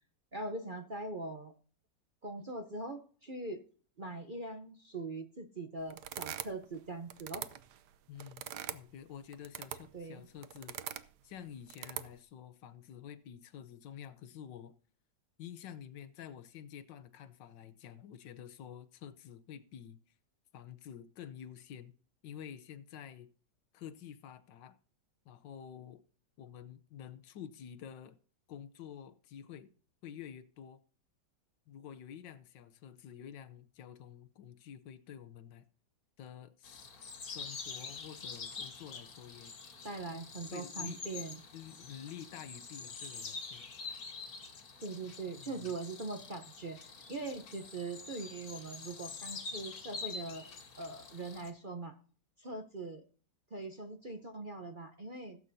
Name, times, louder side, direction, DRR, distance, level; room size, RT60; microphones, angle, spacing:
voice 1, 0.3-1.5 2.2-3.6 4.0-7.4 9.9-10.3 39.8-41.4 44.8-50.5 50.8-52.0 52.4-53.0 53.5-55.4, right 2 dB, 40° right, 0.8 m, -42 dB
sound 1, 5.9-6.7 7.1-8.9 9.3-10.0 10.4-11.1 11.7-12.1, right 11 dB, 70° right, 1.2 m, -42 dB
voice 2, 8.1-10.8 11.2-14.7 15.4-20.0 20.5-21.9 22.2-23.3 23.7-24.8 25.2-26.0 26.4-28.2 28.5-29.7 30.0-30.8 31.7-35.6 36.2-36.9 37.2-39.5 40.5-41.0 41.5-43.7 45.3-45.7, left 9 dB, 75° left, 1.5 m, -49 dB
sound 2, 36.6-51.5, left 4 dB, 55° left, 1.9 m, -46 dB
16.5 x 8.5 x 2.7 m
omnidirectional pair, 2.0 m